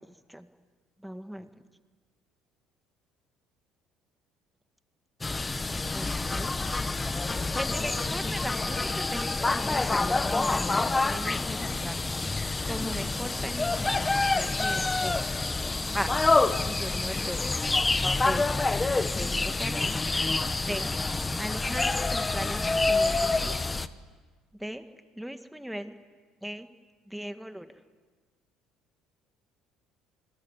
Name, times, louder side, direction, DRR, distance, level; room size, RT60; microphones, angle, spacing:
voice 1, 1.0-1.5 5.9-6.5 7.6-12.4 12.6-15.2 15.9-16.1 16.5-17.5 18.2-18.5 18.9-20.0 20.6-20.9 21.4-23.6 24.6-24.8 25.2-26.0 26.4-26.7 27.1-27.7, equal, 5° right, 8 dB, 1.8 m, -38 dB
sound 1, 5.2-23.9, left 3 dB, 15° left, 1.2 m, -27 dB
28.5 x 21.5 x 9.7 m, 1.4 s
cardioid pair, 110°, 0 cm